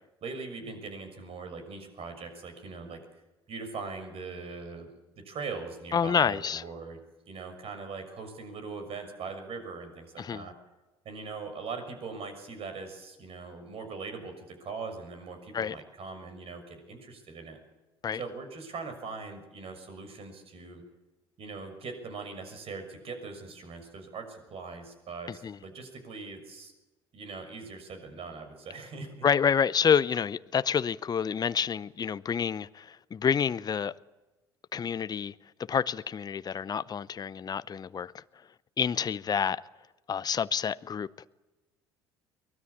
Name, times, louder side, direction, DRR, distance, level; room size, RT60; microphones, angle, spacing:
voice 1, 0.2-3.0 3.5-4.9 5.1-7.0 7.3-10.5 11.0-17.6 18.1-20.8 21.4-26.7 27.1-29.3, right 4 dB, 50° right, 6.3 m, -41 dB
voice 2, 5.9-6.6 10.2-10.5 15.5-15.8 18.0-18.2 25.3-25.6 29.2-33.9 34.7-35.3 35.7-38.2 38.8-39.6 40.1-41.1, left 7 dB, 30° left, 0.7 m, -28 dB
23.5 x 19.5 x 8.6 m
hypercardioid pair, 60°, 13 cm